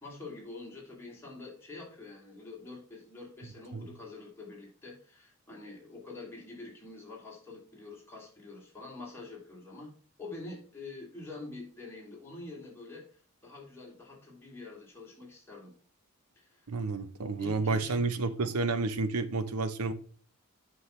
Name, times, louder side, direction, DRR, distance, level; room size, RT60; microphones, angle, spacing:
voice 1, 0.0-15.7 16.4-16.7 17.4-18.0, left 3 dB, 10° left, 2.7 m, -46 dB
voice 2, 16.7-19.9, right 3 dB, 85° right, 0.8 m, -30 dB
8.1 x 5.7 x 3.2 m
head